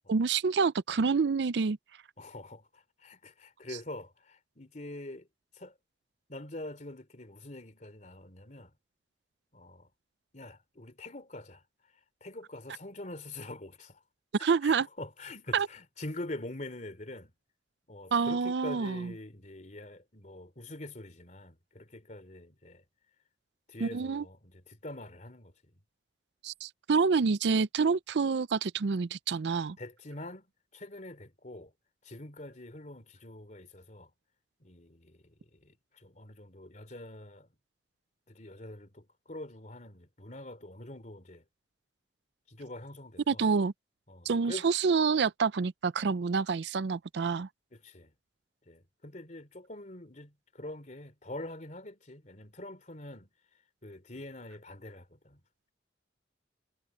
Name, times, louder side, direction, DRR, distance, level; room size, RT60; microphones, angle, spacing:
voice 1, 0.1-1.8 14.4-14.9 15.5-15.7 18.1-19.1 23.8-24.2 26.4-29.8 43.3-43.7 44.3-47.5, right 5 dB, 70° right, 0.5 m, -27 dB
voice 2, 2.2-5.3 5.5-5.7 6.3-8.7 9.5-9.9 10.3-11.6 12.2-14.0 14.4-17.3 17.9-22.8 23.7-25.5 29.8-30.4 30.7-31.7 32.0-34.1 34.6-37.5 38.3-41.4 42.5-43.5 44.1-44.7 47.8-48.1 48.7-53.3 53.8-55.4, left 1 dB, 40° left, 3.1 m, -45 dB
head